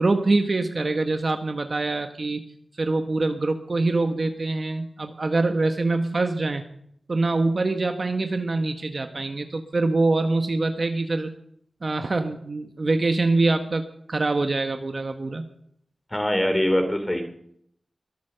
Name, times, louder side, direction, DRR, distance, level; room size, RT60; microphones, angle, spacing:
voice 1, 0.0-2.4 2.8-6.6 7.1-11.3 11.8-15.4, right 3 dB, 55° right, 7 dB, 1.1 m, -24 dB
voice 2, 16.1-17.2, equal, 20° left, 6 dB, 2.9 m, -23 dB
22.5 x 8.3 x 6.8 m, 0.70 s
wide cardioid pair, 75°, 0 cm